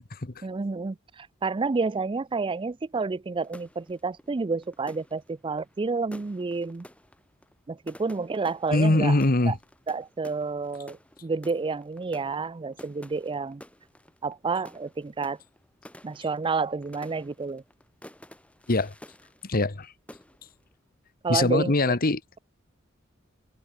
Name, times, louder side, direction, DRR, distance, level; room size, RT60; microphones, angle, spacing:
voice 1, 0.4-6.9 7.7-9.1 9.5-9.6 9.9-13.6 14.2-15.4 16.0-17.6 21.2-22.0, right 4 dB, 25° right, 0.4 m, -30 dB
sound 1, 3.4-19.8 20.1-20.6, left 1 dB, 5° left, 4.2 m, -51 dB
voice 2, 8.7-9.6 18.7-18.9 19.5-19.9 21.3-22.2, left 2 dB, 45° left, 1.3 m, -22 dB
head